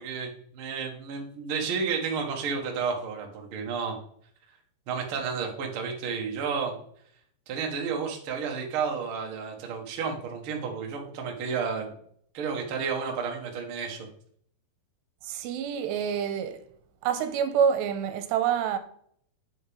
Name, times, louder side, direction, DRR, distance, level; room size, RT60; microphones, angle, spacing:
voice 1, 0.0-3.9 4.9-6.8 7.5-11.9 12.3-14.1, right 5 dB, 70° right, 1.3 m, -31 dB
voice 2, 15.2-16.6 17.0-18.8, right 8 dB, 90° right, 2.9 m, -27 dB
8.6 x 4.9 x 5.2 m
omnidirectional pair, 5.0 m